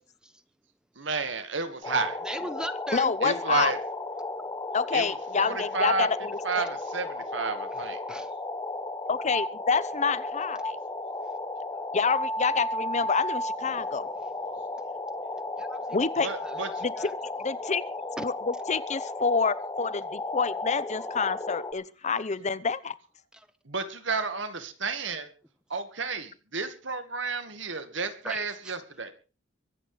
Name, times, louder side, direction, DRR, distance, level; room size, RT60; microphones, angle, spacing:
voice 1, 1.0-2.2 3.2-3.8 4.9-5.1 5.4-6.1 6.4-8.0 16.2-16.7 23.7-25.3 25.7-29.1, right 4 dB, 65° right, 2.4 m, -31 dB
sound 1, 1.8-21.7, left 2 dB, 20° left, 1.6 m, -34 dB
voice 2, 2.2-3.1 7.7-8.3 15.6-15.8 16.2-17.1 18.2-18.3 28.2-28.8, equal, 5° right, 0.9 m, -38 dB
voice 3, 2.9-3.8 4.7-6.6 9.1-10.8 11.9-14.1 15.9-16.3 16.8-17.1 17.4-17.8 18.2-22.9, left 5 dB, 35° left, 0.8 m, -28 dB
23.5 x 8.2 x 5.2 m
head